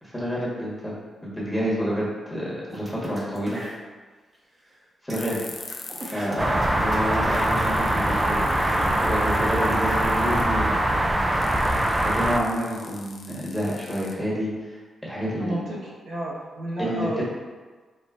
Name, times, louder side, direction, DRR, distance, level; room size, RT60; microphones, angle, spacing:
voice 1, 0.0-0.9 1.2-3.6 5.0-5.4 5.8-8.5 8.8-10.7 12.0-14.7 15.0-15.5 16.8-17.2, equal, 5° left, -7 dB, 1.3 m, -29 dB
sound 1, 2.7-3.7 4.3-4.4 4.7-4.8 5.1-10.4, right 1 dB, 30° right, 0.8 m, -40 dB
sound 2, 5.1-6.2 6.5-6.6 7.1-7.2 7.3-10.6 11.4-14.6, left 4 dB, 60° left, 0.5 m, -43 dB
sound 3, 6.4-12.4, right 1 dB, 15° right, 0.3 m, -23 dB
voice 2, 16.0-17.2, right 1 dB, 70° right, -7 dB, 1.2 m, -31 dB
4.9 x 3.8 x 2.5 m, 1.4 s
cardioid pair, 115°, 0 cm